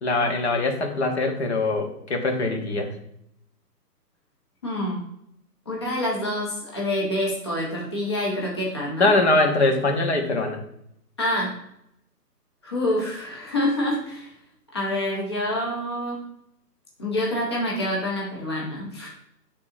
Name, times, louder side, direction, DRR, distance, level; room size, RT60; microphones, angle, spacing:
voice 1, 0.0-2.9 9.0-10.6, left 2 dB, 40° left, 4 dB, 1.1 m, -22 dB
voice 2, 4.6-5.0 5.7-9.1 11.2-11.5 12.6-14.3 14.7-16.3 17.0-19.1, left 1 dB, 15° left, -3 dB, 0.6 m, -27 dB
11.0 x 3.8 x 2.7 m, 0.76 s
figure-of-eight pair, 135°, 49 cm